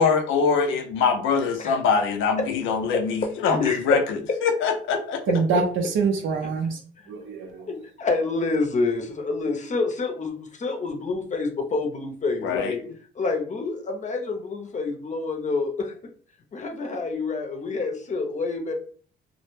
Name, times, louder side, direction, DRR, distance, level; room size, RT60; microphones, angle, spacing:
voice 1, 0.0-5.2 12.4-12.7, left 5 dB, 80° left, 5 dB, 0.5 m, -23 dB
voice 2, 2.9-4.0 5.3-5.4 7.7-12.8 13.2-15.9 16.5-18.7, left 3 dB, 40° left, 3 dB, 0.6 m, -27 dB
voice 3, 5.3-6.8 7.1-7.7, right 5 dB, 75° right, 3 dB, 0.5 m, -25 dB
2.1 x 2.0 x 3.0 m, 0.44 s
cardioid pair, 90°, 20 cm